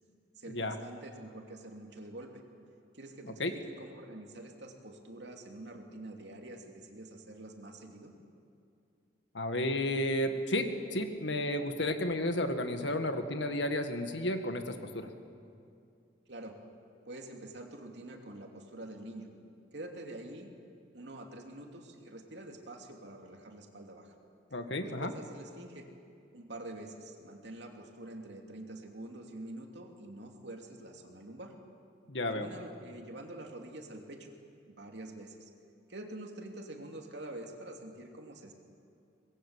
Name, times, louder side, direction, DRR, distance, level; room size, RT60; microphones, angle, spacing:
voice 1, 0.3-2.4 2.9-8.1 16.3-16.6 17.1-19.3 19.7-20.5 20.9-24.1 24.8-25.9 26.3-31.6 32.3-34.3 34.6-35.5 35.9-38.5, right 1 dB, 75° right, 2 dB, 2.8 m, -46 dB
voice 2, 9.3-15.1 24.5-25.1 32.1-32.5, left 1 dB, 85° left, 7 dB, 1.9 m, -32 dB
24.0 x 20.5 x 8.3 m, 2.5 s
head